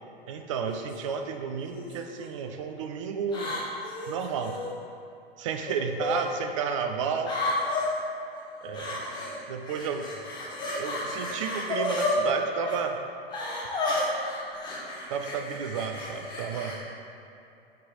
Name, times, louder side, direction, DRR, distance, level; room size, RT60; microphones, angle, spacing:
voice 1, 0.3-3.6 4.1-4.6 5.4-7.4 8.6-9.1 9.5-10.3 10.8-13.0 15.1-16.8, right 6 dB, 35° right, 5 dB, 0.4 m, -32 dB
sound 1, 0.7-1.0 1.7-2.3 3.3-4.7 5.7-6.3 7.2-7.9 8.7-9.4 9.6-12.2 12.6-12.8 13.3-16.8, left 2 dB, 15° left, 0.8 m, -32 dB
6.2 x 4.1 x 3.7 m, 2.7 s
figure-of-eight pair, 105°, 31 cm